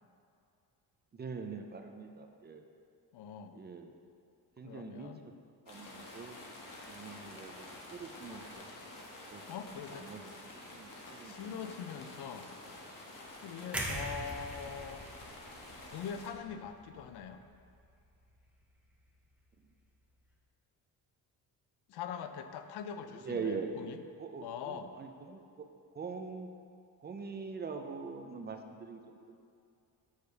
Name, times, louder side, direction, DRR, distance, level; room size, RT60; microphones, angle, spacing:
voice 1, 1.1-2.6 3.5-3.9 4.6-5.3 5.7-6.4 6.9-8.6 9.3-9.4 9.9-10.3 10.7-11.6 13.5-13.7 23.1-23.7 24.2-25.7 25.9-26.5 27.0-29.3, right 5 dB, 25° right, 5 dB, 0.5 m, -43 dB
voice 2, 3.1-3.6 4.6-5.2 9.5-10.1 10.9-12.5 13.4-15.1 15.9-17.4 21.9-24.0 24.4-24.9, left 7 dB, 85° left, 9 dB, 0.6 m, -43 dB
sound 1, 5.7-16.3, left 1 dB, 55° left, 1.4 m, -49 dB
sound 2, 13.7-17.8 18.1-18.3, right 1 dB, 5° right, 0.8 m, -42 dB
6.5 x 5.0 x 6.8 m, 2.5 s
cardioid pair, 145°, 38 cm